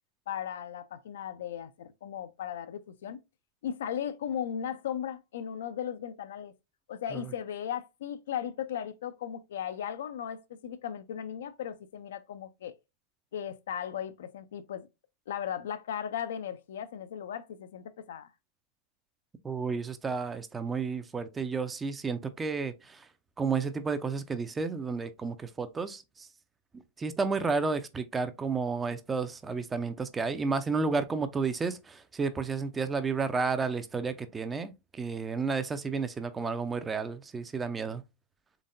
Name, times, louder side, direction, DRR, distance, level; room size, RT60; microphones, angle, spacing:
voice 1, 0.3-3.2 3.6-6.5 6.9-12.7 13.3-14.9 15.3-18.3, left 9 dB, 60° left, 0.3 m, -37 dB
voice 2, 19.4-23.1 23.4-26.3 27.0-38.0, right 4 dB, 15° right, 0.4 m, -32 dB
3.9 x 3.4 x 2.4 m
figure-of-eight pair, 90°, 0 cm